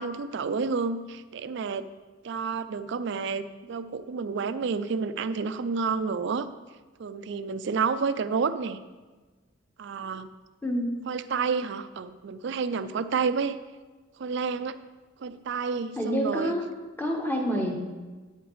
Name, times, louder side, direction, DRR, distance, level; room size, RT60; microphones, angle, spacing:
voice 1, 0.0-1.9 2.2-6.5 7.0-8.8 9.8-10.3 11.1-13.6 14.2-14.8 15.2-16.5 17.5-17.6, right 5 dB, 60° right, 13 dB, 0.4 m, -30 dB
voice 2, 10.6-11.0 16.0-16.6 17.0-17.8, equal, 10° left, 0 dB, 1.1 m, -27 dB
9.7 x 7.9 x 3.2 m, 1.3 s
head